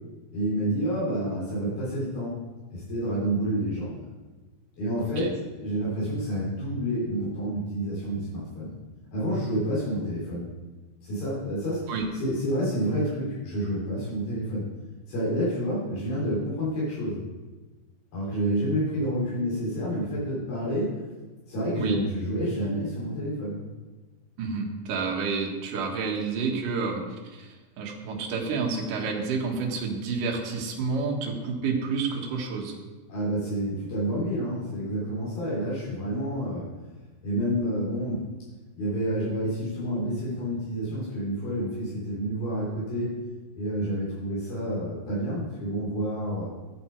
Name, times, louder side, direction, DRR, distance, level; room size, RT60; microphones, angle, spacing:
voice 1, 0.3-2.3 2.7-4.0 4.8-5.3 5.6-8.7 9.1-10.5 11.0-11.9 12.2-14.7 15.1-17.2 18.1-21.0 21.5-23.6 33.1-36.7 37.2-38.3 38.8-43.2 43.6-46.5, equal, 80° left, -8 dB, 5.3 m, -29 dB
voice 2, 24.4-32.7, right 4 dB, 65° right, 0 dB, 3.0 m, -29 dB
13.0 x 8.2 x 4.6 m, 1.2 s
omnidirectional pair, 4.2 m